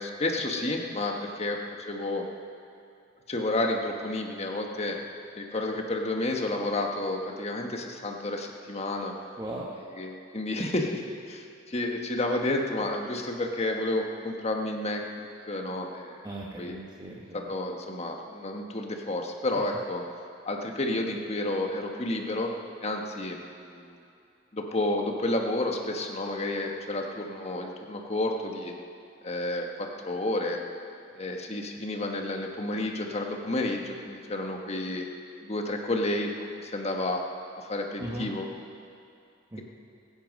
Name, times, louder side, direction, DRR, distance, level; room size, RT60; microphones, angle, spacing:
voice 1, 0.0-1.6 1.9-2.3 3.3-5.0 5.3-9.1 10.0-11.0 11.3-16.2 16.6-16.8 17.3-20.0 20.4-22.5 22.8-23.9 24.5-28.7 29.2-30.6 31.1-35.0 35.4-37.2 37.6-38.5, left 2 dB, 30° left, 2 dB, 1.3 m, -31 dB
voice 2, 9.4-9.7 16.2-17.5 38.0-38.3 39.5-39.6, right 1 dB, 20° right, -4 dB, 1.1 m, -38 dB
21.5 x 9.3 x 5.3 m, 2.6 s
head